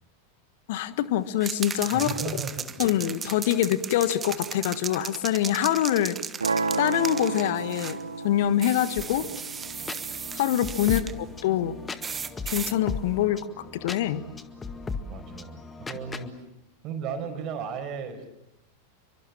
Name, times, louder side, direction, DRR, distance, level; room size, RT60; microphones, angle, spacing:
voice 1, 0.7-2.1 2.8-6.2 6.8-9.3 10.3-11.8 12.4-14.2, left 12 dB, 50° left, 13 dB, 1.5 m, -25 dB
sound 1, 1.4-8.0 8.6-11.1 12.0-12.8, right 6 dB, 20° right, 1.3 m, -36 dB
voice 2, 1.9-2.8 10.8-11.2 15.0-16.5 16.8-18.3, right 6 dB, 35° right, 7 dB, 5.7 m, -36 dB
sound 2, 6.4-12.4, right 3 dB, 75° right, 1.2 m, -33 dB
sound 3, 9.0-16.3, left 4 dB, 15° left, 1.9 m, -38 dB
30.0 x 24.5 x 7.4 m, 0.87 s
figure-of-eight pair, 90°, 0 cm